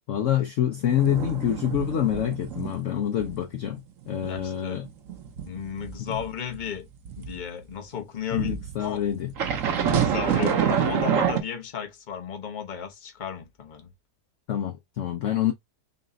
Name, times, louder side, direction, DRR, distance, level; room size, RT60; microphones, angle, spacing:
voice 1, 0.1-4.9 6.0-6.1 8.3-9.3 14.5-15.5, left 11 dB, 60° left, 0.9 m, -26 dB
sound 1, 0.9-2.8 3.1-3.4 3.8-7.4 8.3-11.4, right 8 dB, 60° right, 1.2 m, -27 dB
voice 2, 4.2-4.8 5.4-6.9 7.2-8.5 8.8-9.1 9.7-13.9, left 8 dB, 35° left, 0.9 m, -34 dB
4.1 x 2.4 x 3.8 m
omnidirectional pair, 1.7 m